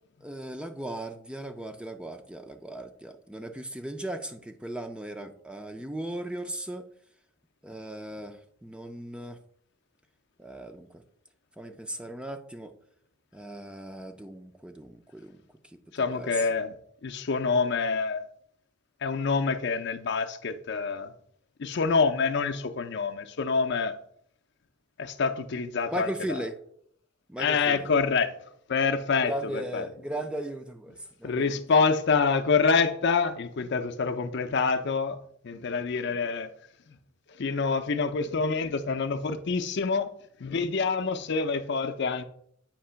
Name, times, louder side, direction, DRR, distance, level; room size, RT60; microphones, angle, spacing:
voice 1, 0.2-6.8 7.6-9.4 10.4-11.0 11.6-12.7 13.3-15.4 16.0-16.5 25.9-26.6 27.3-27.9 29.2-31.6, right 1 dB, 5° right, 0.4 m, -37 dB
voice 2, 15.9-18.3 19.0-21.1 21.6-24.0 25.0-26.4 27.4-28.3 28.7-29.8 31.2-35.2 35.4-36.5 37.4-40.1 40.4-42.2, left 4 dB, 55° left, 0.5 m, -26 dB
8.6 x 2.9 x 5.6 m
head